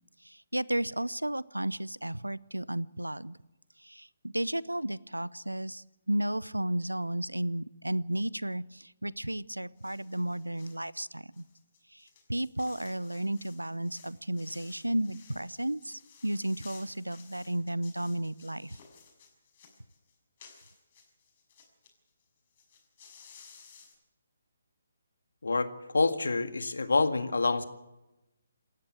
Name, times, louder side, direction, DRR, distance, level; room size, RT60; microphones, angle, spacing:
voice 1, 0.2-3.4 3.8-11.4 11.9-18.8, right 1 dB, 90° right, 22 dB, 0.7 m, -33 dB
sound 1, 9.8-10.8 11.3-21.9 22.2-22.3 22.5-23.9, left 6 dB, 35° left, 6.3 m, -56 dB
voice 2, 25.4-27.6, left 3 dB, 70° left, 10 dB, 1.8 m, -27 dB
27.5 x 13.5 x 8.2 m, 0.99 s
figure-of-eight pair, 140°, 0 cm